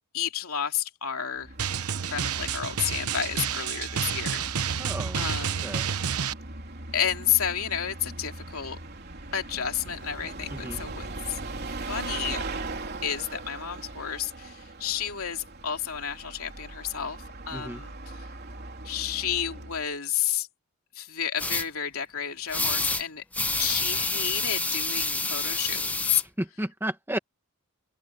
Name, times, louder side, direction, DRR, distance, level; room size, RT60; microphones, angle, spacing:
voice 1, 0.1-1.5 2.1-4.9 5.1-5.9 6.9-8.8 9.3-11.4 11.9-12.4 13.0-18.2 18.8-20.5 20.9-23.2 23.6-26.2, left 9 dB, 70° left, 3.1 m, -31 dB
Bus, 1.4-19.9, right 2 dB, 45° right, 3.6 m, -40 dB
Drum, 1.6-6.3, right 7 dB, 90° right, 1.0 m, -30 dB
voice 2, 4.8-5.3 5.6-5.9 10.5-10.8 17.5-17.8 26.4-27.2, right 1 dB, 10° right, 1.5 m, -33 dB
sound 1, 21.4-21.6 22.5-23.0 23.3-26.2, left 2 dB, 5° left, 0.8 m, -28 dB
open air
head